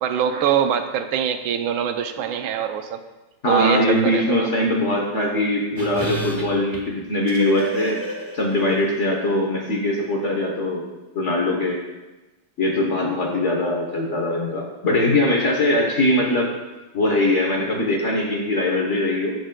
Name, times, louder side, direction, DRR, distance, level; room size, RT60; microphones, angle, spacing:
voice 1, 0.0-3.0 3.5-4.5, right 8 dB, 85° right, 8 dB, 1.4 m, -23 dB
voice 2, 3.4-8.0 8.3-10.8 11.1-11.8 12.6-16.5 16.9-19.3, left 1 dB, 50° left, -1 dB, 0.9 m, -21 dB
sound 1, 5.8-9.3 9.5-9.6, equal, 20° right, 0.6 m, -32 dB
14.5 x 4.9 x 2.2 m, 1.1 s
omnidirectional pair, 2.2 m